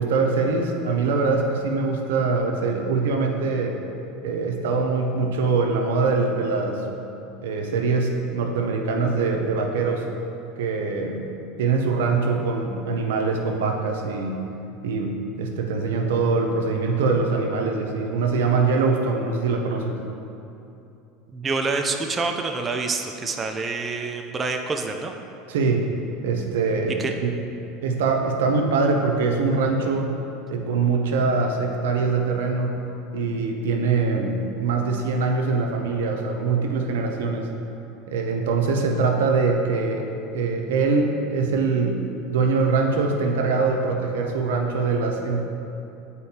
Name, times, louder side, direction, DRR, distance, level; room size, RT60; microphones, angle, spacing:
voice 1, 0.0-3.8 4.2-6.8 7.4-10.0 10.6-11.3 11.6-14.4 14.8-20.0 25.5-25.9 26.2-27.3 27.8-30.1 30.5-32.8 33.1-37.5 38.1-40.0 40.3-42.0 42.3-45.4, right 4 dB, 85° right, 2 dB, 0.7 m, -23 dB
voice 2, 21.3-25.1 27.0-27.1, right 3 dB, 25° right, 4 dB, 0.4 m, -27 dB
8.3 x 4.4 x 2.8 m, 2.8 s
supercardioid pair, 110°, 0 cm